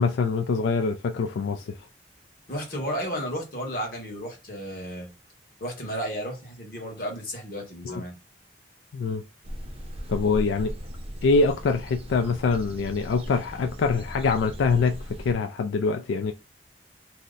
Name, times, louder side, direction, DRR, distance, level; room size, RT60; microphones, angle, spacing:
voice 1, 0.0-1.8 7.8-8.0 8.9-9.2 10.1-10.7 11.2-16.3, left 4 dB, 90° left, 0.3 m, -24 dB
voice 2, 2.5-5.1 5.6-8.1, equal, 50° left, 1.2 m, -33 dB
sound 1, 9.4-15.3, equal, 35° right, 0.5 m, -37 dB
2.7 x 2.1 x 3.7 m
head